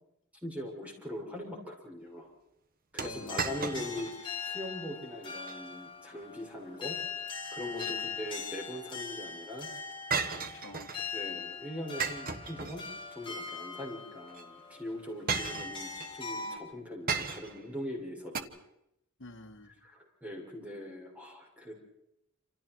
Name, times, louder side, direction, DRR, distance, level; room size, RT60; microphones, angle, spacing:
voice 1, 0.4-2.3 2.9-7.0 7.5-9.7 11.1-12.8 13.1-18.5 19.8-21.7, left 1 dB, 5° right, -1 dB, 6.4 m, -41 dB
voice 2, 3.0-3.6 7.6-8.2 10.3-11.0 19.2-19.8, left 2 dB, 60° left, 5 dB, 1.7 m, -49 dB
sound 1, 3.0-16.6, left 5 dB, 25° left, 3.9 m, -41 dB
sound 2, 3.0-4.2 4.5-4.6 5.2-5.6 7.5-8.4 10.1-11.1 12.0-13.2 14.3-14.4 15.3-16.1 17.1-17.7 18.3-18.4, right 5 dB, 40° right, 1.4 m, -35 dB
28.0 x 27.5 x 4.7 m, 0.81 s
head